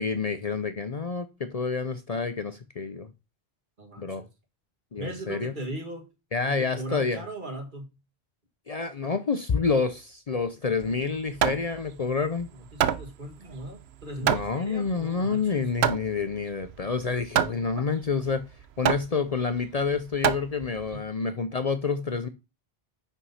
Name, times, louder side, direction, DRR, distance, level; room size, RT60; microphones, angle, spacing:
voice 1, 0.0-3.1 4.0-4.2 4.9-5.5 6.3-7.2 8.7-12.5 14.2-18.4 18.8-22.3, left 5 dB, 45° left, 0.7 m, -28 dB
voice 2, 3.8-4.3 5.0-6.1 6.4-7.9 12.7-15.7 17.7-17.8 20.9-21.0, right 1 dB, 50° right, 2.1 m, -38 dB
Hammer, 10.8-21.0, right 9 dB, 85° right, 0.9 m, -29 dB
5.8 x 5.6 x 5.6 m
omnidirectional pair, 1.0 m